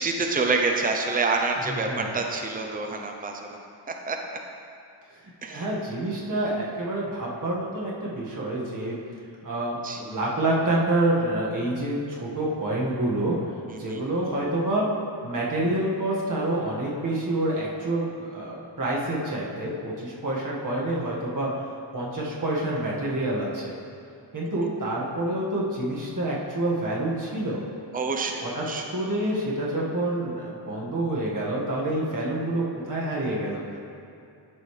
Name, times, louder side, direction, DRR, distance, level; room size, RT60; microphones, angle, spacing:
voice 1, 0.0-3.5 4.1-4.2 5.4-5.7 9.8-10.0 13.7-14.0 27.9-28.8, right 3 dB, 20° right, 3 dB, 0.6 m, -27 dB
voice 2, 1.7-2.2 5.4-9.0 9.4-13.4 13.8-14.9 15.2-21.5 21.9-23.7 24.3-27.6 28.4-28.6 28.9-33.8, right 1 dB, 40° right, -5 dB, 1.7 m, -27 dB
12.5 x 5.4 x 3.3 m, 2.6 s
wide cardioid pair, 120°, 47 cm